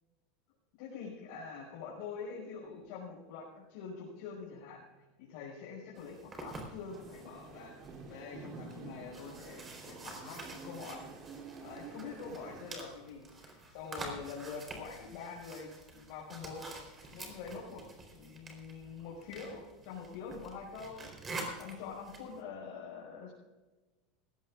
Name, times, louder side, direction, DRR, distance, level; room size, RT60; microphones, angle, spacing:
voice 1, 0.8-11.1 11.6-16.7 17.1-17.9 18.1-21.1 21.6-23.3, left 5 dB, 70° left, -6 dB, 5.4 m, -45 dB
sound 1, 6.0-22.4, right 2 dB, 25° right, 4.0 m, -48 dB
sound 2, 6.9-12.6, right 5 dB, 45° right, 3.1 m, -49 dB
20.0 x 16.0 x 2.5 m, 1.2 s
supercardioid pair, 125°, 0 cm